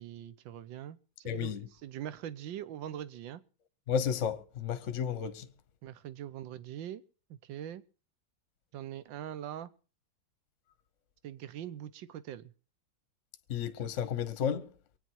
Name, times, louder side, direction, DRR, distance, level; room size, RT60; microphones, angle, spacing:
voice 1, 0.0-3.4 5.8-7.0 7.3-7.8 8.7-9.7 11.2-12.5, right 11 dB, 70° right, 1.5 m, -42 dB
voice 2, 1.2-1.6 3.9-5.5 13.5-14.7, left 8 dB, 45° left, 1.1 m, -32 dB
23.5 x 9.4 x 4.6 m
omnidirectional pair, 2.3 m